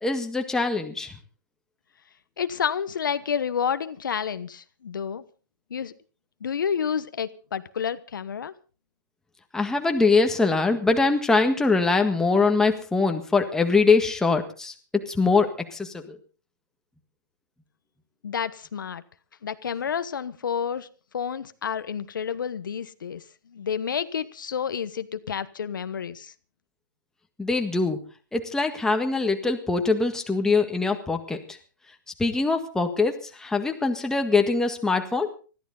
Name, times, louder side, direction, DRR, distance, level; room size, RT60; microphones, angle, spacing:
voice 1, 0.0-1.1 9.5-16.1 27.4-28.0 28.3-31.4 32.2-35.3, left 3 dB, 5° left, 4 dB, 1.7 m, -23 dB
voice 2, 2.4-5.2 5.7-5.9 6.4-8.5 18.2-19.0 19.4-20.9 21.1-26.3, left 7 dB, 85° left, 13 dB, 1.1 m, -30 dB
20.5 x 14.0 x 4.0 m, 0.36 s
hypercardioid pair, 145°, 10 cm